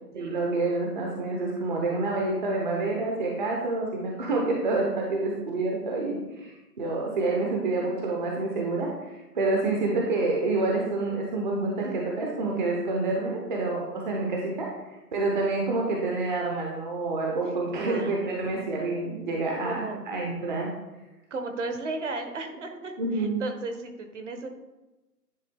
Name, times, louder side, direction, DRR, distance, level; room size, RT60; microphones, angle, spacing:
voice 1, 0.1-20.7 23.0-23.4, right 2 dB, 30° right, -1 dB, 0.8 m, -28 dB
voice 2, 17.8-18.4 19.6-20.0 21.3-24.5, right 3 dB, 45° right, 6 dB, 1.1 m, -35 dB
9.9 x 3.6 x 3.6 m, 1.0 s
figure-of-eight pair, 150°, 49 cm